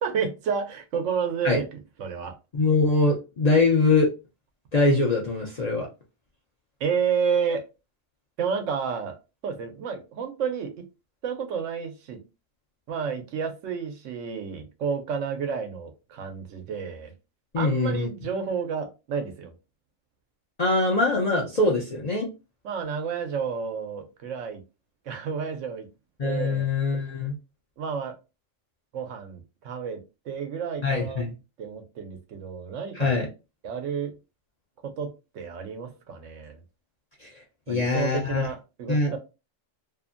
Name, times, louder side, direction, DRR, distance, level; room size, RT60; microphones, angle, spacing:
voice 1, 0.0-2.3 6.8-7.6 8.4-9.1 9.4-10.7 11.2-12.2 12.9-17.1 17.6-19.5 22.6-24.6 25.1-25.9 26.2-26.7 27.8-28.1 28.9-30.0 30.3-31.3 31.6-33.1 33.6-34.1 34.8-35.1 35.3-36.6 37.7-39.2, right 6 dB, 75° right, 6 dB, 1.0 m, -30 dB
voice 2, 2.5-4.1 4.7-5.9 17.5-18.1 20.6-22.3 26.2-27.4 30.8-31.3 32.9-33.3 37.2-37.3 37.7-38.5 38.9-39.1, left 3 dB, 45° left, -2 dB, 0.5 m, -23 dB
2.7 x 2.5 x 2.4 m, 0.28 s
omnidirectional pair, 1.3 m